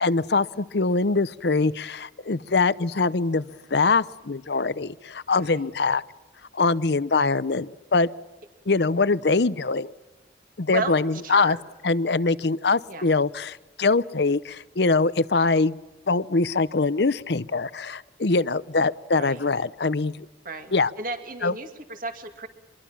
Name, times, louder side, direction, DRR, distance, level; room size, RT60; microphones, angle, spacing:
voice 1, 0.0-6.0 6.5-8.1 8.7-9.9 10.6-11.6 11.8-15.8 16.1-20.2 20.7-20.9 21.4-21.5, left 3 dB, 65° left, 17 dB, 0.7 m, -23 dB
voice 2, 5.4-5.7 10.7-11.6 12.9-13.1 19.2-19.5 20.4-22.5, right 3 dB, 50° right, 6 dB, 2.5 m, -34 dB
25.0 x 22.5 x 7.3 m, 1.1 s
head